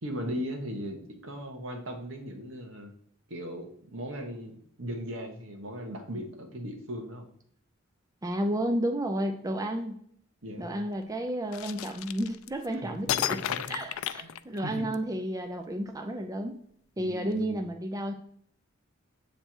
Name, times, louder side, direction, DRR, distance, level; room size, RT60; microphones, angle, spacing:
voice 1, 0.0-2.9 3.3-7.2 10.4-10.9 12.7-13.6 14.2-14.3 14.6-14.9 17.0-17.7, equal, 70° right, 3 dB, 1.2 m, -38 dB
voice 2, 8.2-10.0 10.6-13.4 13.7-16.6 17.0-18.1, right 1 dB, 15° right, 5 dB, 0.5 m, -32 dB
sound 1, 11.5-12.7 13.1-14.9, left 11 dB, 85° left, 0.3 m, -32 dB
7.6 x 3.3 x 4.4 m, 0.66 s
head